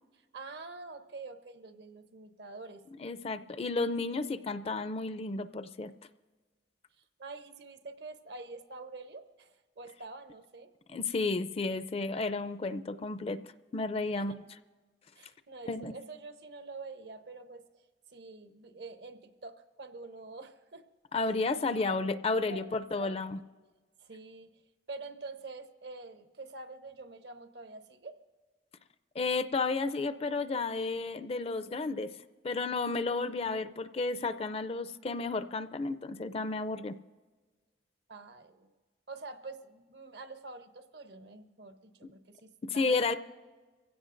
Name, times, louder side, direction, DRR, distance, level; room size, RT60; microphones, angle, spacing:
voice 1, 0.3-2.8 7.2-10.7 14.2-14.3 15.2-17.6 18.1-20.9 21.7-22.0 22.5-23.3 24.0-24.6 24.9-28.2 38.1-38.7 39.1-43.1, right 3 dB, 65° right, 8 dB, 0.9 m, -46 dB
voice 2, 3.0-5.9 10.9-13.4 13.7-14.3 15.7-15.9 21.1-23.4 29.2-32.1 32.4-37.0 42.0-42.1 42.6-43.1, left 3 dB, 35° left, 12 dB, 0.4 m, -32 dB
24.0 x 16.5 x 2.6 m, 1.3 s
head